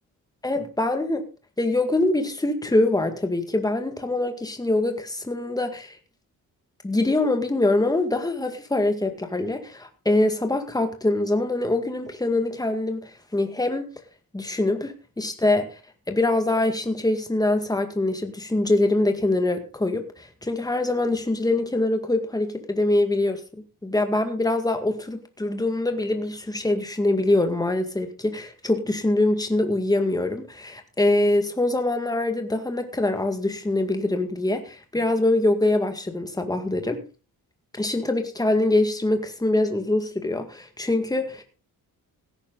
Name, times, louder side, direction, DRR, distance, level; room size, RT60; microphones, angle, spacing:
voice 1, 0.4-1.3 1.6-6.0 6.8-13.9 14.3-15.7 16.1-23.4 23.8-37.0 37.7-41.4, left 2 dB, 10° left, 2.1 m, -24 dB
16.5 x 10.0 x 4.0 m
cardioid pair, 120°, 37 cm